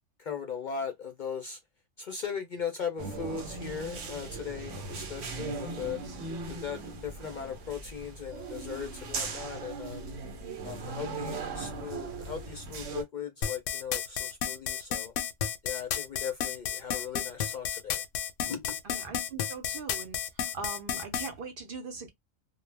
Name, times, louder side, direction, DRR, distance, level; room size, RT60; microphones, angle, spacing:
voice 1, 0.2-1.6 2.0-6.0 6.5-10.1 10.6-15.1 15.6-18.0 18.4-18.8, left 7 dB, 55° left, 0.6 m, -38 dB
sound 1, 3.0-13.0, right 3 dB, 80° right, 1.1 m, -39 dB
voice 2, 5.4-5.8 18.8-22.1, right 4 dB, 55° right, 0.7 m, -41 dB
sound 2, 13.4-21.3, left 8 dB, 90° left, 0.9 m, -32 dB
2.3 x 2.1 x 3.2 m
omnidirectional pair, 1.3 m